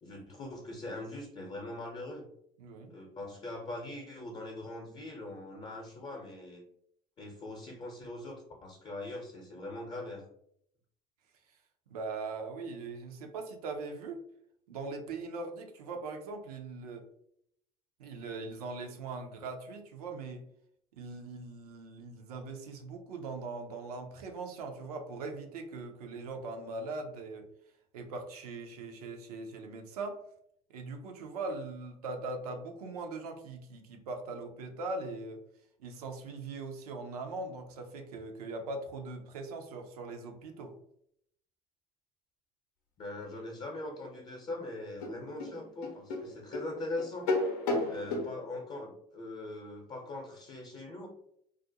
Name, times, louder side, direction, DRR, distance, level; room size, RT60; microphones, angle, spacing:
voice 1, 0.0-2.2 2.9-6.6 7.2-10.3 43.0-47.3 47.9-51.1, left 2 dB, 35° left, -1 dB, 0.7 m, -41 dB
voice 2, 2.6-3.0 11.9-14.2 14.7-17.0 18.0-20.4 20.9-27.5 27.9-30.2 30.7-35.4 35.8-40.7, right 3 dB, 90° right, 4 dB, 0.5 m, -40 dB
sound 1, 44.4-44.5 45.0-48.3, left 2 dB, 80° left, 0.6 m, -33 dB
2.4 x 2.1 x 2.7 m, 0.71 s
hypercardioid pair, 70°, 19 cm